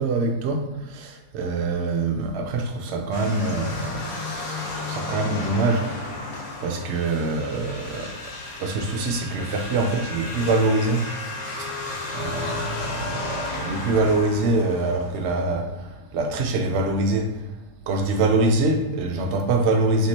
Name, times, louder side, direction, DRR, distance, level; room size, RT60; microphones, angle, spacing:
voice 1, 0.0-6.2 6.6-8.2 8.6-11.1 11.6-11.7 12.1-17.5 17.9-20.1, right 2 dB, 60° right, 0.8 m, -24 dB
sound 1, 3.1-15.2, left 2 dB, 65° left, 1.4 m, -33 dB
3.6 x 3.0 x 4.3 m
omnidirectional pair, 1.7 m